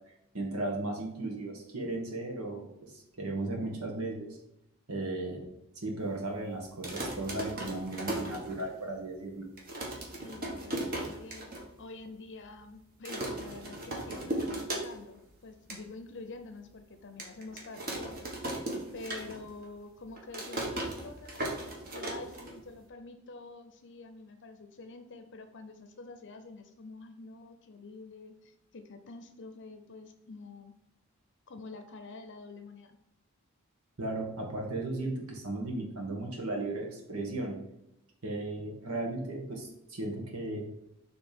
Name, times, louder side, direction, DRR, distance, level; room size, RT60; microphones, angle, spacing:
voice 1, 0.3-4.4 4.9-5.5 5.8-9.5 34.0-37.6 38.2-40.6, right 2 dB, 80° right, 0 dB, 1.7 m, -36 dB
sound 1, 6.7-9.0 9.3-9.4 9.6-11.6 12.0-12.1 12.3-12.7 13.0-15.2 15.5-15.8 16.3-16.4 17.2-19.6 19.9-22.9, right 1 dB, 45° right, 1.5 m, -37 dB
voice 2, 10.2-11.5 11.8-21.5 21.9-30.7 31.5-33.0, left 3 dB, 55° left, 8 dB, 0.7 m, -47 dB
7.0 x 3.5 x 5.3 m, 0.86 s
head